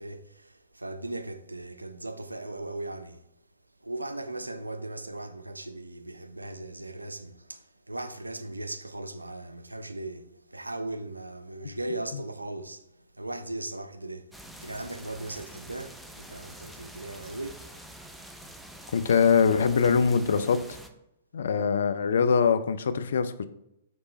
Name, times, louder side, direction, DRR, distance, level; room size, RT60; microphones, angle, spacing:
voice 1, 0.0-3.3 3.8-14.3 14.6-17.7, right 2 dB, 90° right, 0.4 m, -38 dB
sound 1, 14.3-20.9, right 1 dB, 5° right, 0.4 m, -46 dB
voice 2, 18.9-20.8 21.3-23.5, left 6 dB, 65° left, 0.3 m, -23 dB
5.1 x 3.2 x 3.0 m
figure-of-eight pair, 115°, 0 cm